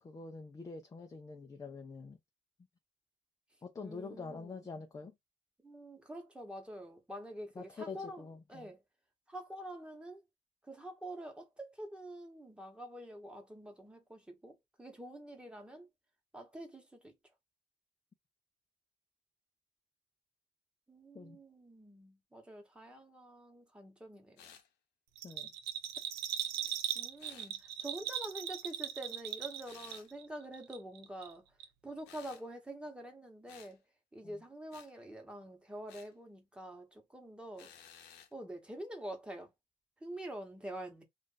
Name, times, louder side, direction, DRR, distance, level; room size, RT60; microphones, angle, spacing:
voice 1, 0.0-2.2 3.6-5.1 7.6-8.7 21.1-21.4 25.2-25.5 34.2-34.4, left 4 dB, 20° left, 0.5 m, -46 dB
voice 2, 3.8-4.7 5.6-8.8 9.3-10.2 10.7-15.9 16.3-17.1 20.9-24.5 26.6-31.4 31.8-33.8 34.1-38.0 38.3-39.5 40.0-41.0, right 1 dB, 5° right, 1.2 m, -47 dB
sound 1, 24.4-24.7 27.2-27.5 29.6-30.1 32.1-32.5 33.5-33.7 34.7-34.9 35.9-36.1 37.6-38.3, left 9 dB, 90° left, 0.7 m, -56 dB
Bell, 25.2-30.3 30.5-31.3 31.6-31.7, right 10 dB, 80° right, 0.6 m, -39 dB
2.6 x 2.5 x 3.8 m
cardioid pair, 110°, 17 cm